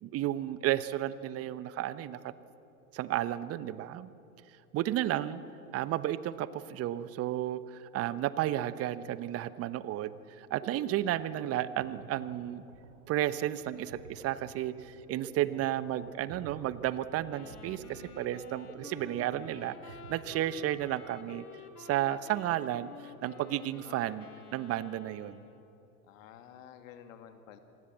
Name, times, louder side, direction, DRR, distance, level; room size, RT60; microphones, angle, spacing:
voice 1, 0.0-2.3 2.9-4.1 4.7-5.4 5.7-12.6 13.1-21.4 21.8-24.2 24.5-25.4, right 13 dB, 35° right, 15 dB, 1.0 m, -33 dB
sound 1, 10.3-21.1, right 5 dB, 75° right, 2.7 m, -52 dB
Wind instrument woodwind instrument, 17.3-25.8, left 5 dB, 85° left, 2.1 m, -51 dB
voice 2, 26.1-27.6, left 9 dB, 60° left, 8 dB, 2.4 m, -51 dB
26.5 x 19.5 x 7.5 m, 2.9 s
hypercardioid pair, 95°, 44 cm